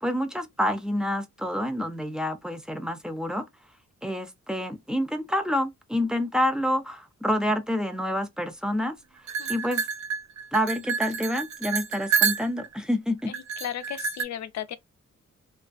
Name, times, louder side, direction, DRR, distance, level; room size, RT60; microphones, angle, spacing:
voice 1, 0.0-3.5 4.0-9.0 9.5-9.9 10.5-13.3, equal, 5° right, 0.3 m, -28 dB
sound 1, 9.3-12.8 13.3-14.2, right 6 dB, 70° right, 0.5 m, -28 dB
voice 2, 13.6-14.8, left 10 dB, 65° left, 0.4 m, -34 dB
2.3 x 2.3 x 2.5 m
wide cardioid pair, 155°, 30 cm